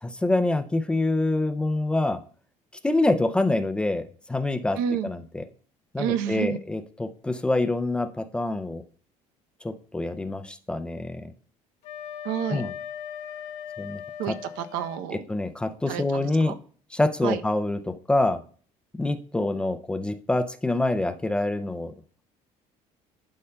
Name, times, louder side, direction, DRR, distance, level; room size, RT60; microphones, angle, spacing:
voice 1, 0.0-2.2 2.8-4.8 5.0-5.4 5.9-8.8 9.6-11.3 12.5-12.7 13.8-14.0 14.3-14.4 15.3-16.5 16.9-18.4 19.0-21.9, left 2 dB, 5° left, 0.3 m, -26 dB
voice 2, 4.8-5.1 6.0-6.6 12.2-12.6 14.2-15.2 15.9-16.5 17.2-17.4, right 9 dB, 85° right, 0.7 m, -29 dB
Wind instrument woodwind instrument, 11.8-15.0, left 9 dB, 60° left, 0.9 m, -38 dB
12.0 x 5.4 x 2.2 m
cardioid pair, 175°, 14 cm